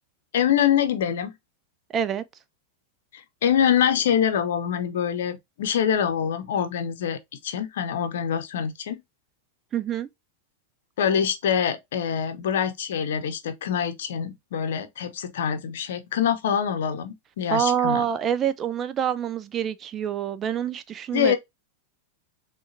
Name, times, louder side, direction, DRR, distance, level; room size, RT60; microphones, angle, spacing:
voice 1, 0.3-1.3 3.1-9.0 11.0-18.0 21.1-21.4, left 8 dB, 60° left, 0.8 m, -25 dB
voice 2, 1.9-2.2 9.7-10.1 17.5-21.3, right 8 dB, 25° right, 0.4 m, -26 dB
6.2 x 2.3 x 2.6 m
figure-of-eight pair, 90°, 0 cm